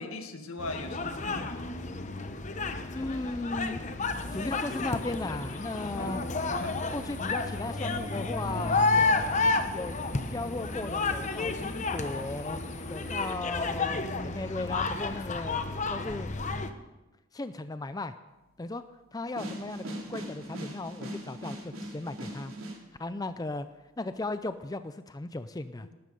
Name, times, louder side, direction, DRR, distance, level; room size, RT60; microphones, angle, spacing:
voice 1, 0.0-1.7 6.0-6.8 25.8-25.9, left 2 dB, 80° left, 6 dB, 1.8 m, -40 dB
sound 1, 0.6-16.7, left 3 dB, 35° left, 0.9 m, -31 dB
voice 2, 2.9-3.8 4.3-6.2 6.9-9.3 9.7-10.0 10.3-12.6 12.9-15.6 15.9-16.3 17.3-18.1 18.6-18.8 19.1-22.5 23.0-23.7 24.0-25.9, left 2 dB, 15° left, 11 dB, 0.4 m, -36 dB
sound 2, 4.0-13.3, left 5 dB, 65° left, 4.7 m, -52 dB
sound 3, 19.4-22.8, equal, 75° right, 3.7 m, -40 dB
18.5 x 12.5 x 5.3 m, 1.1 s
head